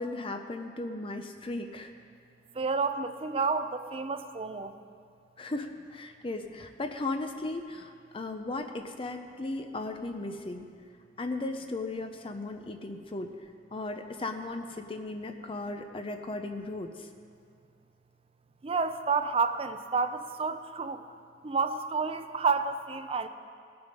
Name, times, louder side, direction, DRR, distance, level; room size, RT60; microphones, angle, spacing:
voice 1, 0.0-1.9 5.4-10.7 11.2-13.3 13.7-17.1, left 2 dB, 30° left, 6 dB, 0.6 m, -36 dB
voice 2, 2.5-4.8 18.6-21.0 21.4-23.3, right 4 dB, 30° right, 10 dB, 0.5 m, -30 dB
19.0 x 6.9 x 5.3 m, 2.2 s
head